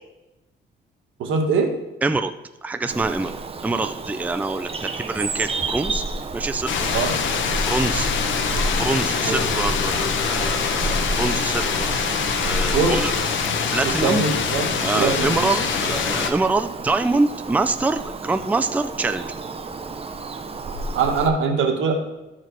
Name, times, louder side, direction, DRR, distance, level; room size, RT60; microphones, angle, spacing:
voice 1, 1.2-1.7 6.9-7.1 9.3-9.4 12.6-13.0 14.0-14.7 14.9-15.5 20.9-21.9, right 5 dB, 80° right, 3 dB, 1.5 m, -22 dB
voice 2, 2.0-2.3 2.6-6.0 6.3-6.9 7.7-8.1 8.6-11.9 12.4-13.1 13.7-14.2 14.8-19.3, right 3 dB, 10° right, 8 dB, 0.4 m, -25 dB
Bird vocalization bird call bird song, 2.9-21.3, right 2 dB, 30° right, 0.8 m, -31 dB
sound 1, 6.7-16.3, left 6 dB, 70° left, 1.0 m, -24 dB
13.5 x 4.8 x 4.5 m, 1.0 s
cardioid pair, 90°, 20 cm